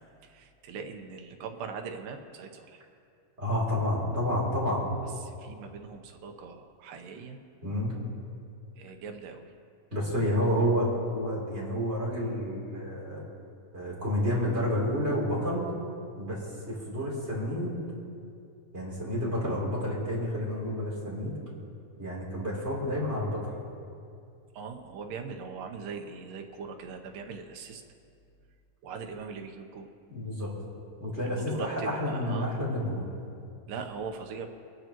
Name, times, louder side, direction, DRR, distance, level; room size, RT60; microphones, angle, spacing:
voice 1, 0.2-2.8 5.2-7.4 8.8-9.4 24.5-27.8 28.8-29.9 31.2-32.6 33.7-34.5, right 5 dB, 85° right, 4 dB, 2.6 m, -40 dB
voice 2, 3.4-4.9 7.6-7.9 9.9-10.9 11.1-13.2 13.7-15.7 16.2-17.7 18.7-21.4 22.0-23.4 30.1-30.5 31.0-33.1, equal, 20° right, -6 dB, 3.4 m, -30 dB
23.5 x 11.5 x 3.0 m, 2.4 s
omnidirectional pair, 3.9 m